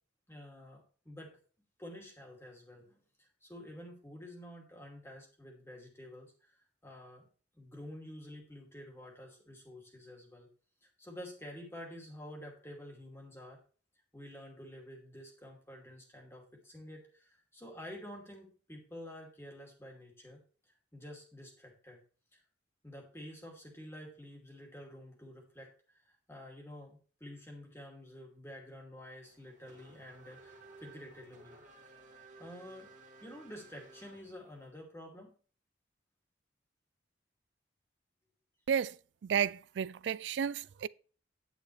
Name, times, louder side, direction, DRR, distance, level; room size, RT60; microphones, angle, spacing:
voice 1, 0.3-1.3 1.8-7.3 7.5-10.5 10.8-13.6 14.1-22.0 22.3-22.4 22.8-31.6 31.9-32.0 32.4-32.9 33.2-35.4, left 1 dB, 15° left, 2.5 m, -50 dB
Race car auto racing / Accelerating revving vroom, 29.2-34.7, right 3 dB, 40° right, 2.5 m, -56 dB
voice 2, 39.2-40.9, right 8 dB, 70° right, 0.3 m, -32 dB
10.0 x 9.6 x 3.3 m
head